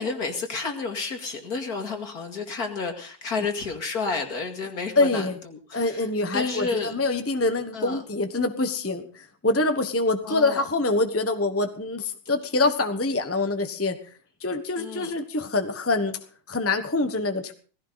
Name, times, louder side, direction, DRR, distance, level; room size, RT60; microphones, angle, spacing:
voice 1, 0.0-6.1 6.3-6.9 7.7-8.0 10.2-10.7 14.8-15.1, left 4 dB, 55° left, 5 dB, 2.8 m, -31 dB
voice 2, 4.9-5.4 5.7-14.0 14.4-16.2 16.5-17.5, left 2 dB, 10° left, 7 dB, 1.0 m, -25 dB
18.0 x 16.0 x 4.1 m, 0.40 s
omnidirectional pair, 2.0 m